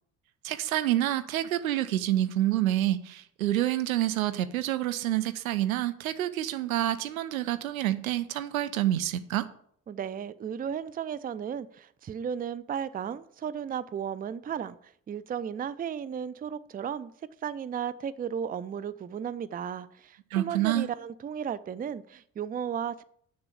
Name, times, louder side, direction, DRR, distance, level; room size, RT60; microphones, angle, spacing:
voice 1, 0.4-9.5 20.3-20.9, right 13 dB, 75° right, 0.7 m, -28 dB
voice 2, 9.9-17.1 17.4-23.0, right 8 dB, 20° right, 0.5 m, -34 dB
8.0 x 6.8 x 7.0 m
figure-of-eight pair, 50°, 42 cm